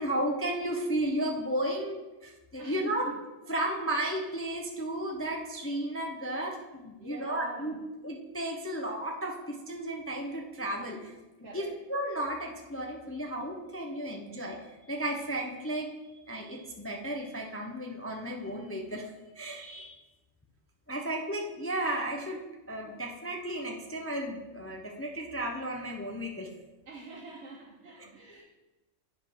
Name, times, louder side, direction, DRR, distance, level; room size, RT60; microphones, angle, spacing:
voice 1, 0.0-3.1 3.5-7.8 8.0-11.1 11.4-15.9 16.3-20.0 20.9-26.5, right 1 dB, 20° left, 1 dB, 0.4 m, -34 dB
voice 2, 2.6-3.1 7.0-7.8 11.4-11.8 21.0-21.1 26.9-28.4, right 3 dB, 60° right, -3 dB, 1.2 m, -46 dB
9.8 x 4.9 x 3.5 m, 1.1 s
omnidirectional pair, 1.3 m